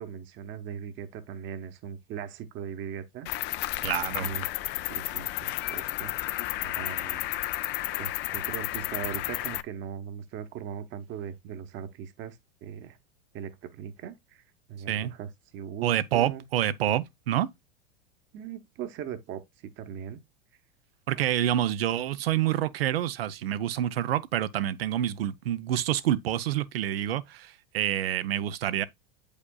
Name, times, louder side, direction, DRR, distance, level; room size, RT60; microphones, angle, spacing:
voice 1, 0.0-3.3 4.1-4.5 4.8-7.3 7.6-13.0 13.3-14.4 14.7-16.5 18.3-19.4 19.8-20.2, right 8 dB, 40° right, 1.0 m, -39 dB
Cricket, 3.3-9.6, left 17 dB, 35° left, 0.4 m, -32 dB
voice 2, 3.8-4.3 14.9-15.1 15.8-17.5 21.1-28.8, right 11 dB, 80° right, 0.6 m, -27 dB
8.3 x 5.1 x 2.2 m
hypercardioid pair, 100°, 30 cm